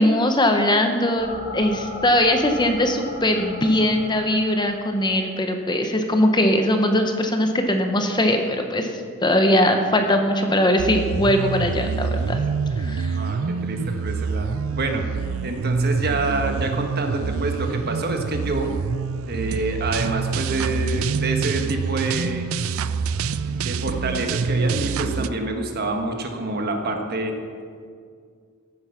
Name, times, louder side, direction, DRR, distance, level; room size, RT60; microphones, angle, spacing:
voice 1, 0.0-8.9 9.2-12.4 12.8-13.2, left 1 dB, 20° left, 5 dB, 0.9 m, -20 dB
sound 1, 1.2-5.8, left 2 dB, 55° left, 3.3 m, -37 dB
sound 2, 10.8-25.3, right 5 dB, 80° right, 0.4 m, -26 dB
voice 2, 13.1-15.0 15.4-18.7 19.3-22.5 23.5-27.4, right 2 dB, 50° right, 4 dB, 1.4 m, -27 dB
15.0 x 8.7 x 5.8 m, 2.1 s
head